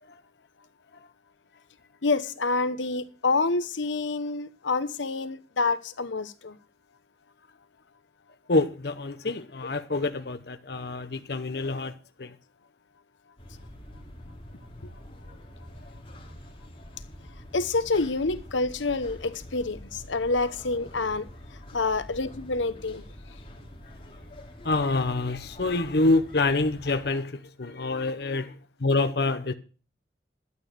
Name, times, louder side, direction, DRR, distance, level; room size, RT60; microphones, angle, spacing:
voice 1, 2.0-6.6 17.5-21.3 21.7-23.0, left 3 dB, 85° left, 1.0 m, -27 dB
voice 2, 8.5-11.9 12.2-12.3 24.6-29.5, left 2 dB, 55° left, 0.8 m, -26 dB
sound 1, 13.4-27.1, left 1 dB, 30° left, 2.9 m, -46 dB
12.5 x 8.8 x 6.6 m
head